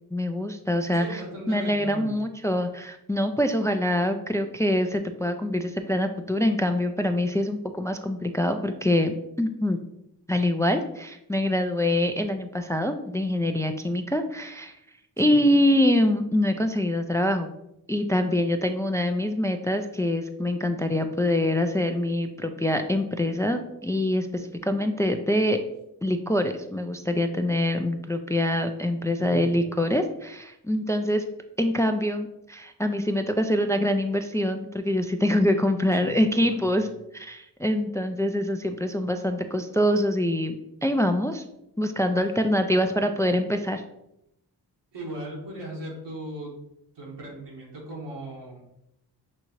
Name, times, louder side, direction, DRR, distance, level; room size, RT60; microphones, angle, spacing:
voice 1, 0.1-1.2 1.5-9.8 10.3-14.7 15.2-17.5 17.9-25.6 26.0-31.2 31.6-36.9 37.1-40.5 40.8-41.4 41.8-43.8, left 1 dB, 10° left, 6 dB, 0.3 m, -25 dB
voice 2, 0.9-2.1 15.2-15.5 29.2-29.6 36.0-36.8 44.9-46.5 46.9-48.6, right 1 dB, 85° right, -4 dB, 1.6 m, -38 dB
6.2 x 2.7 x 3.0 m, 0.81 s
cardioid pair, 50°, 41 cm